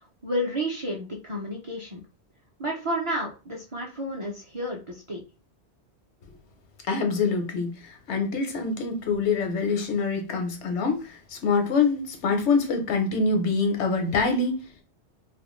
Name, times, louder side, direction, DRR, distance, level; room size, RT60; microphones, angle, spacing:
voice 1, 0.2-2.0 2.6-5.2, equal, 45° right, 0.4 m, -31 dB
voice 2, 6.9-14.6, left 4 dB, 85° left, 1.0 m, -25 dB
2.4 x 2.1 x 3.0 m
omnidirectional pair, 1.1 m